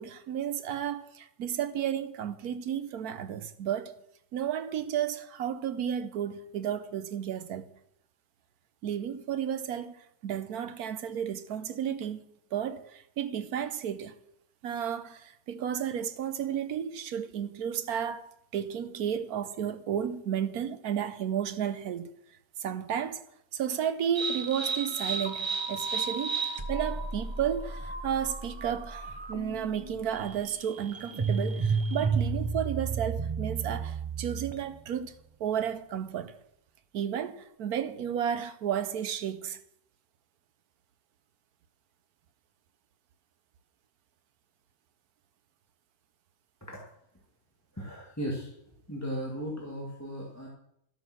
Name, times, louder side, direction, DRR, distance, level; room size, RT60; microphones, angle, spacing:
voice 1, 0.0-3.9 4.3-7.7 8.8-10.0 10.2-12.2 12.5-14.1 14.6-22.1 22.6-23.2 23.5-35.1 35.4-36.4 36.9-39.6, right 9 dB, 75° right, 1.3 m, -32 dB
sound 1, 24.1-34.7, right 4 dB, 25° right, 0.7 m, -32 dB
voice 2, 47.7-48.5 48.9-50.5, equal, 10° left, 1.8 m, -36 dB
13.0 x 8.7 x 6.1 m
omnidirectional pair, 1.6 m